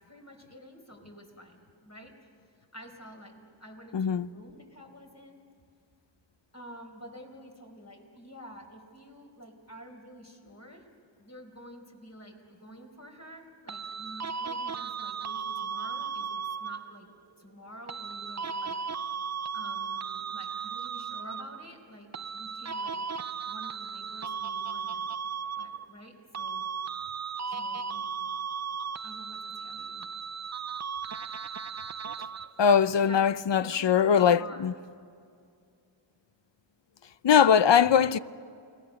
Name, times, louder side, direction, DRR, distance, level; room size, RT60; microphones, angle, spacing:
voice 1, 0.1-2.3 2.7-5.4 6.5-10.8 11.2-17.1 17.4-18.7 19.5-22.1 22.3-23.1 23.5-25.2 25.6-26.6 27.5-28.2 29.0-30.1 33.0-34.7, equal, 35° left, 4.6 m, -49 dB
voice 2, 3.9-4.3 32.6-34.7 37.2-38.2, left 7 dB, 65° left, 0.7 m, -21 dB
sound 1, 13.7-17.0 17.9-21.7 22.1-26.1 26.3-32.7, right 6 dB, 35° right, 0.5 m, -36 dB
29.0 x 20.0 x 6.6 m
cardioid pair, 50°, 46 cm